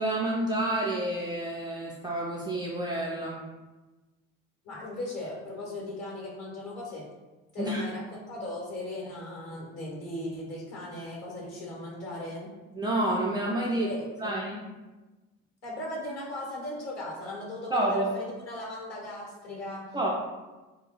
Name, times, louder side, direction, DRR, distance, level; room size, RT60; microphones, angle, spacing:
voice 1, 0.0-3.4 7.6-7.8 12.7-13.9 14.2-14.6 17.7-18.1 19.9-20.1, right 1 dB, 10° right, -4 dB, 0.4 m, -29 dB
voice 2, 4.6-7.0 7.5-8.0 8.3-12.5 13.8-14.3 15.6-19.8, left 1 dB, 40° left, -3 dB, 1.3 m, -38 dB
4.1 x 2.3 x 2.3 m, 1.2 s
figure-of-eight pair, 50°, 38 cm